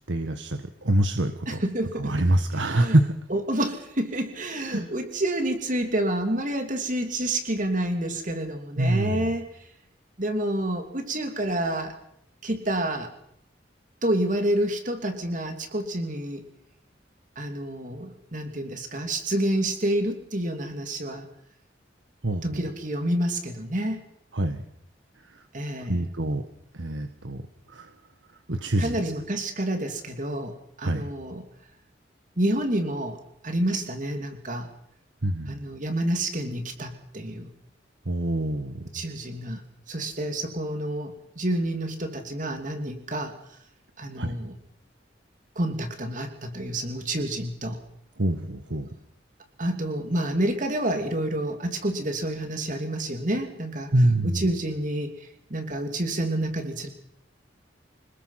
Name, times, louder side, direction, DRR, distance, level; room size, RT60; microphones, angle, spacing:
voice 1, 0.1-1.6 2.0-3.1 4.7-4.8 8.8-9.3 22.2-22.6 24.3-24.6 25.9-26.4 26.7-27.4 27.7-27.9 28.5-29.1 30.8-31.0 35.2-35.7 38.1-38.9 44.2-44.4 48.2-48.9 53.9-54.5, right 1 dB, 85° right, 8 dB, 1.5 m, -25 dB
voice 2, 1.5-2.2 2.5-3.0 3.3-9.7 10.2-11.9 12.4-13.1 14.0-16.4 17.4-21.3 22.4-24.0 25.5-26.1 28.8-31.4 32.4-33.2 33.4-34.7 35.5-37.5 38.9-39.6 39.9-43.3 44.0-44.5 45.5-47.8 49.6-53.9 54.2-56.9, right 1 dB, 45° right, 5 dB, 2.9 m, -28 dB
28.0 x 20.5 x 5.9 m, 0.75 s
head